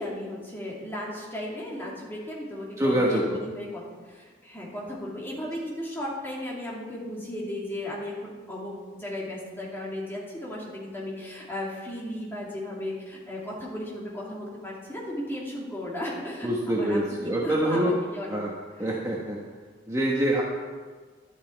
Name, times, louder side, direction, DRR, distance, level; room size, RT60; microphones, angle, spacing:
voice 1, 0.0-18.4, left 1 dB, 10° left, -5 dB, 2.5 m, -35 dB
voice 2, 2.8-3.2 16.4-17.9 18.3-18.5 18.8-19.4 19.9-20.4, right 1 dB, 15° right, -3 dB, 1.1 m, -25 dB
11.5 x 11.0 x 4.5 m, 1.5 s
head